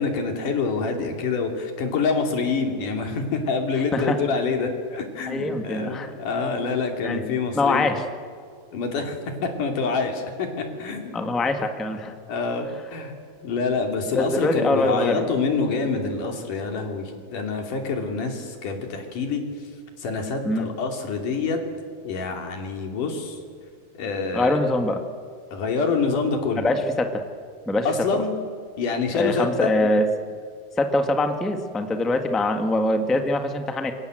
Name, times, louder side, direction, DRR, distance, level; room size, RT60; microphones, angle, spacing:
voice 1, 0.0-7.9 8.7-11.2 12.3-13.1 13.4-19.4 20.0-21.6 22.0-23.4 23.9-24.6 25.5-26.7 27.9-28.3 28.8-29.7, left 4 dB, 80° left, 4 dB, 4.3 m, -26 dB
voice 2, 5.3-6.1 7.0-7.2 7.5-8.0 11.1-12.1 14.1-15.3 20.4-20.7 24.3-25.0 26.6-27.2 27.7-28.2 29.1-30.0 30.8-33.9, left 2 dB, ahead, 6 dB, 0.5 m, -23 dB
26.5 x 24.0 x 7.8 m, 2.2 s
omnidirectional pair, 3.6 m